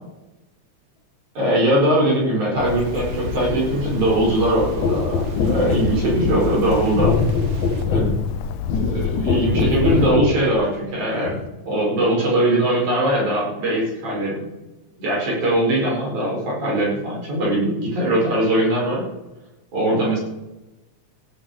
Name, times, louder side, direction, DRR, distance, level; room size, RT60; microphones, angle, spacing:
voice 1, 1.4-5.1 5.5-7.1 7.8-8.1 8.7-11.3 11.7-14.4 15.0-19.0 19.7-20.2, right 1 dB, 75° right, -5 dB, 6.2 m, -20 dB
Bird, 2.6-10.2, left 10 dB, 85° left, 1.4 m, -31 dB
sound 1, 2.6-7.9, right 3 dB, 90° right, 2.8 m, -36 dB
sound 2, 4.8-10.4 11.3-11.4, left 4 dB, 70° left, 1.0 m, -23 dB
16.0 x 5.5 x 8.0 m, 1.0 s
omnidirectional pair, 3.5 m